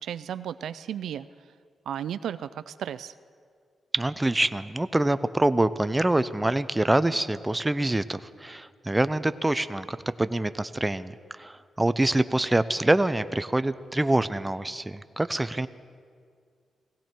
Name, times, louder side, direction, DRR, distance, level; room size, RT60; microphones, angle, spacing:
voice 1, 0.0-1.3 1.9-3.1, right 9 dB, 85° right, 15 dB, 0.4 m, -34 dB
voice 2, 3.9-15.7, right 1 dB, 15° right, 13 dB, 0.5 m, -25 dB
18.0 x 16.5 x 4.5 m, 2.2 s
cardioid pair, 105°, 0 cm